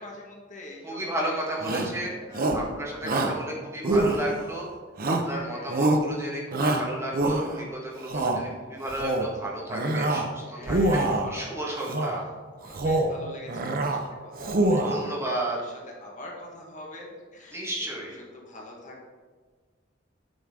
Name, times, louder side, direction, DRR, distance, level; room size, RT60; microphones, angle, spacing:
voice 1, 0.0-1.5 2.3-2.6 5.2-5.9 9.4-9.6 10.4-11.8 12.5-14.9 15.2-15.7 16.0-19.1, left 1 dB, 45° left, -2 dB, 1.6 m, -45 dB
voice 2, 0.8-2.2 2.5-4.7 5.1-11.0 11.3-12.2 14.8-15.6 17.5-18.2, right 1 dB, 15° right, -3 dB, 1.6 m, -33 dB
Shout, 1.6-2.0 2.3-2.7 3.0-3.4 3.8-4.5 5.0-5.4 5.7-6.1 6.5-7.6 8.0-8.4 8.9-9.3 9.7-10.3 10.6-11.3 11.8-12.2 12.6-13.2 13.5-14.0 14.4-15.1, right 2 dB, 50° right, 0.8 m, -25 dB
8.9 x 6.4 x 3.8 m, 1.5 s
head